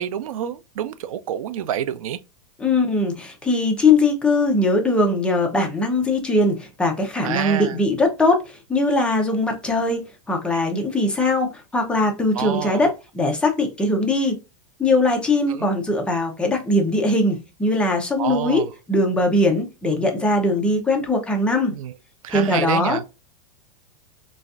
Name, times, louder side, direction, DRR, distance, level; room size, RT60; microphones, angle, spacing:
voice 1, 0.0-2.2 7.2-7.7 12.4-12.9 15.5-15.7 18.2-18.7 20.0-20.1 21.7-21.9 22.2-23.0, right 10 dB, 85° right, 0.5 m, -27 dB
voice 2, 2.6-14.4 14.8-21.8 22.3-23.1, left 2 dB, 5° left, 0.7 m, -21 dB
4.0 x 2.5 x 2.4 m
supercardioid pair, 155°, 17 cm